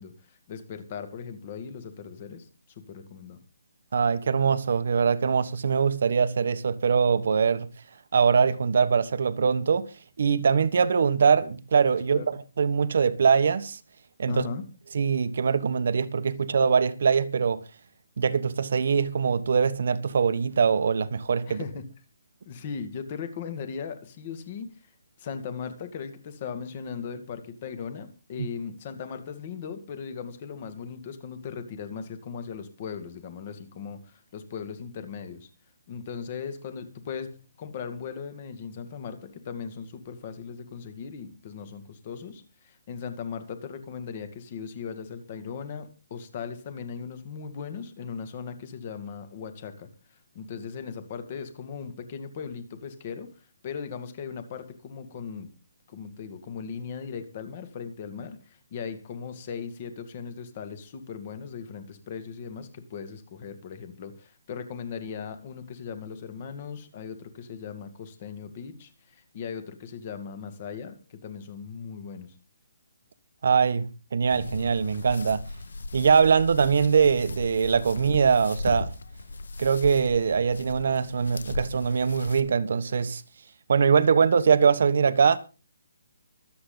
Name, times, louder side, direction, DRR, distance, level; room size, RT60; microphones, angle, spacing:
voice 1, 0.0-2.5 2.8-3.4 12.1-12.3 14.3-14.6 21.5-21.8 22.5-24.7 25.2-35.5 35.9-53.3 53.6-55.5 55.9-72.3, left 6 dB, 30° left, 2.2 m, -38 dB
voice 2, 3.9-7.7 8.1-9.9 10.2-13.8 14.2-14.4 14.9-17.6 18.2-21.6 28.4-28.5 73.4-73.8 74.1-75.4 75.9-78.9 79.6-83.2 83.7-85.4, right 6 dB, 55° right, 1.2 m, -22 dB
sound 1, 74.3-82.4, left 2 dB, 75° left, 1.7 m, -38 dB
25.0 x 8.6 x 4.0 m
hypercardioid pair, 170°, 0 cm